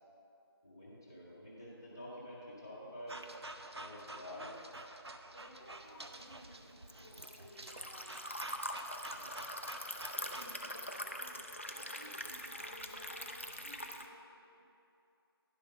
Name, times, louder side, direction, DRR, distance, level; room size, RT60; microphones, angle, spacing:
voice 1, 0.6-3.2 3.7-4.5 9.1-9.4, equal, 10° left, -8 dB, 0.7 m, -49 dB
sound 1, 3.1-10.6, right 2 dB, 85° right, 0.7 m, -49 dB
voice 2, 4.2-4.6 5.3-8.3 8.8-8.9 9.6-14.2 14.5-14.6, equal, 20° right, -10 dB, 1.4 m, -57 dB
Liquid, 5.8-14.1, equal, 30° left, 0.4 m, -43 dB
10.5 x 5.5 x 5.3 m, 2.7 s
figure-of-eight pair, 170°, 13 cm